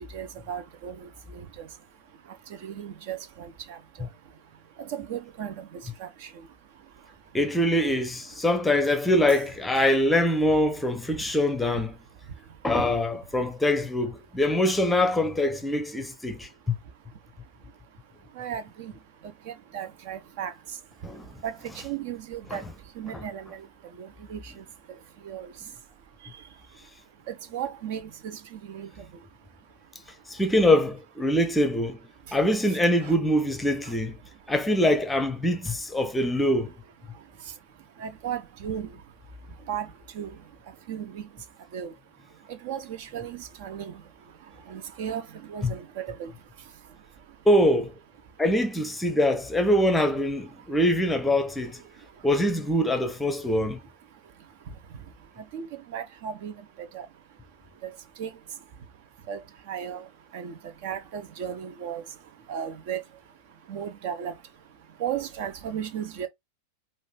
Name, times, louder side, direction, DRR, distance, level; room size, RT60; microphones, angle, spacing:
voice 1, 0.1-1.7 2.6-3.8 4.8-5.6 6.0-6.1 18.4-18.9 19.7-20.5 21.4-21.5 21.8-22.6 23.0-23.5 24.0-24.4 25.3-25.5 27.3-28.9 33.0-33.1 38.0-38.9 39.7-39.9 40.1-40.3 40.9-41.2 41.7-41.9 42.6-43.9 44.7-45.2 45.5-46.3 55.5-55.7 55.9-56.5 56.9-57.1 58.2-58.3 59.3-59.4 59.7-60.0 60.3-60.5 60.8-62.0 62.5-63.0 63.7-64.3 65.0-66.3, right 9 dB, 50° right, 0.8 m, -35 dB
voice 2, 7.3-11.9 12.6-16.8 21.0-21.3 22.5-22.6 30.3-32.0 32.3-34.2 34.5-36.7 45.6-45.7 47.5-47.9 48.4-51.8 52.2-53.8, left 1 dB, 5° left, 0.8 m, -24 dB
5.2 x 2.6 x 3.6 m
figure-of-eight pair, 90°, 0 cm